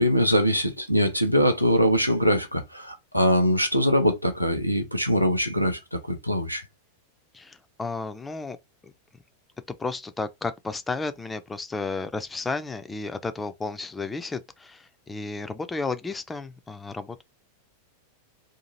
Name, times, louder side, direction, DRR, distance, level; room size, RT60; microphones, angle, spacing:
voice 1, 0.0-6.6, equal, 90° right, 0.6 m, -22 dB
voice 2, 7.3-8.6 9.7-17.2, left 3 dB, 10° left, 0.3 m, -33 dB
2.7 x 2.4 x 2.8 m
figure-of-eight pair, 90°, 0 cm